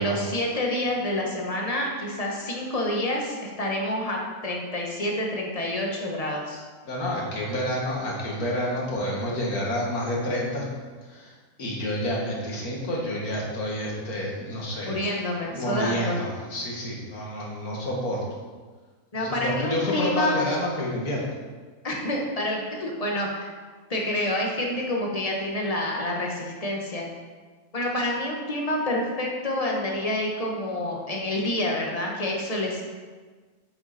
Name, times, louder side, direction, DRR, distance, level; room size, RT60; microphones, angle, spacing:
voice 1, 0.0-6.6 14.8-16.2 19.1-20.5 21.8-23.5 23.9-27.1 27.7-32.8, left 1 dB, 25° left, -1 dB, 1.5 m, -28 dB
voice 2, 6.8-10.7 11.0-11.3 11.6-15.0 15.5-18.2 19.1-21.3, left 1 dB, 75° left, -3 dB, 2.5 m, -29 dB
8.7 x 8.0 x 4.3 m, 1.4 s
omnidirectional pair, 1.6 m